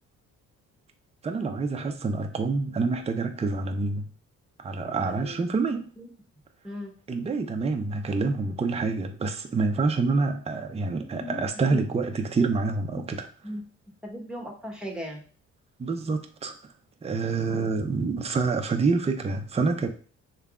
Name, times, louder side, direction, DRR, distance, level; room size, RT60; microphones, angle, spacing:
voice 1, 1.2-4.1 4.6-5.9 7.1-13.3 15.8-16.6 17.0-19.9, right 4 dB, 20° right, 0.5 m, -27 dB
voice 2, 5.0-5.4 6.0-6.1 6.6-6.9 11.1-11.4 11.7-11.8 13.4-13.6 14.0-15.2 17.5-17.7, equal, 5° right, 1.2 m, -37 dB
5.7 x 3.4 x 2.4 m
cardioid pair, 90°, 30 cm